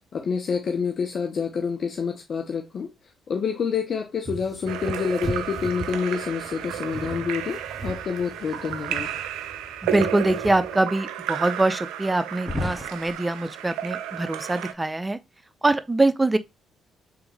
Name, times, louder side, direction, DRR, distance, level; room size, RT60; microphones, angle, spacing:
voice 1, 0.1-2.9 3.3-9.1, left 6 dB, 50° left, 0.6 m, -27 dB
sound 1, 4.2-10.8, right 4 dB, 35° right, 1.1 m, -39 dB
Splash splatter / Drip / Trickle dribble, 4.7-14.7, right 10 dB, 75° right, 0.4 m, -33 dB
sound 2, 5.0-6.4 8.1-9.6 10.4-10.5 11.1-11.2 12.3-13.1, left 2 dB, 15° left, 1.3 m, -37 dB
voice 2, 9.8-15.2 15.6-16.4, right 2 dB, 20° right, 0.5 m, -23 dB
3.5 x 3.5 x 3.4 m
hypercardioid pair, 45°, 0 cm